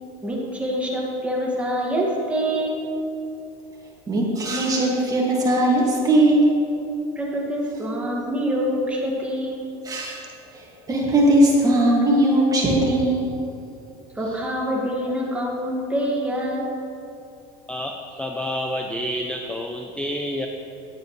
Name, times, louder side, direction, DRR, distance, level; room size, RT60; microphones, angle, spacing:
voice 1, 0.2-2.8 7.2-9.6 14.2-16.7, equal, 10° right, -3 dB, 1.9 m, -25 dB
voice 2, 4.1-6.5 9.9-10.3 10.5-13.3, right 1 dB, 25° right, -2 dB, 2.1 m, -19 dB
voice 3, 17.7-20.5, equal, 5° left, 3 dB, 0.5 m, -29 dB
10.5 x 9.0 x 3.2 m, 2.7 s
supercardioid pair, 110°, 16 cm